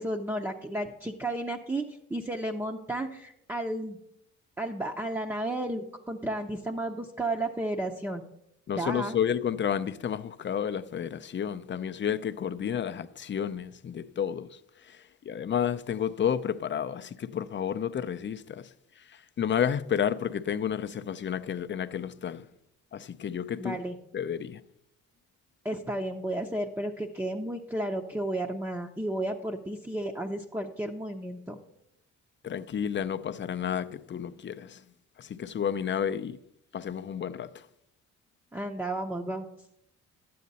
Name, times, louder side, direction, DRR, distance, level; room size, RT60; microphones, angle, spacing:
voice 1, 0.0-1.8 2.1-4.0 4.6-8.2 8.8-9.2 23.6-24.0 25.6-31.6 38.5-39.6, right 1 dB, 10° right, 0.7 m, -33 dB
voice 2, 8.7-22.5 22.9-23.8 24.1-24.6 32.4-34.9 35.2-36.4 36.7-37.7, left 8 dB, 40° left, 0.5 m, -31 dB
11.5 x 8.6 x 4.1 m
cardioid pair, 90°, 30 cm